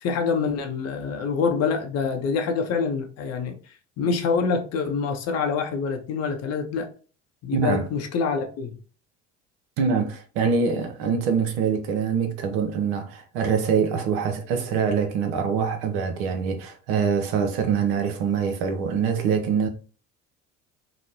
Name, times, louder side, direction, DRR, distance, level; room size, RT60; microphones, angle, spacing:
voice 1, 0.0-3.6 4.0-6.9 7.4-8.7, left 5 dB, 45° left, 0.7 m, -26 dB
voice 2, 7.5-7.9 9.8-19.7, right 6 dB, 65° right, 0.7 m, -24 dB
2.9 x 2.0 x 2.7 m
hypercardioid pair, 70°, 35 cm